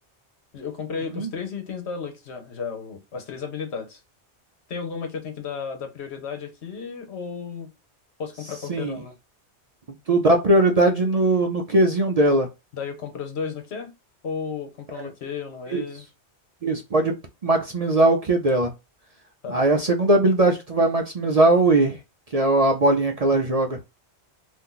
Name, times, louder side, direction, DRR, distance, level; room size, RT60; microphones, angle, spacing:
voice 1, 0.5-4.0 4.7-7.7 8.2-9.1 12.7-13.9 14.2-16.1 19.4-19.6, left 6 dB, 75° left, 1.2 m, -33 dB
voice 2, 10.1-12.5 14.9-15.1 15.7-15.8 16.6-17.2 17.4-18.7 19.5-22.0 22.3-23.8, right 2 dB, 45° right, 0.5 m, -20 dB
2.8 x 2.6 x 3.8 m
omnidirectional pair, 1.1 m